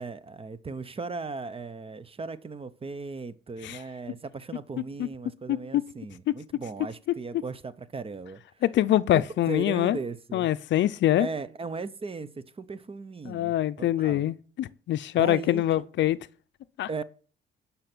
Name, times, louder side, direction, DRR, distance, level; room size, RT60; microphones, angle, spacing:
voice 1, 0.0-8.6 9.1-10.5 11.2-14.2 15.1-15.9 16.9-17.0, right 4 dB, 30° right, 0.8 m, -37 dB
voice 2, 5.5-5.8 8.6-10.0 10.3-11.3 13.3-16.2 16.8-17.0, left 13 dB, 70° left, 0.5 m, -24 dB
10.5 x 5.7 x 6.1 m
cardioid pair, 90°, 20 cm